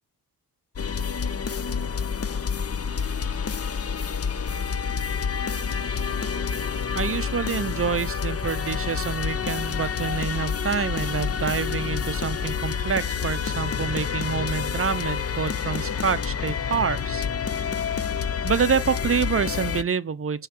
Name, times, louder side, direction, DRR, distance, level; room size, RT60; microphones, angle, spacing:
sound 1, 0.8-19.8, left 6 dB, 35° left, 0.6 m, -28 dB
voice 1, 6.9-17.2 17.5-17.7 18.4-20.5, right 6 dB, 35° right, 0.6 m, -27 dB
9.4 x 3.2 x 5.9 m
cardioid pair, 80°, 41 cm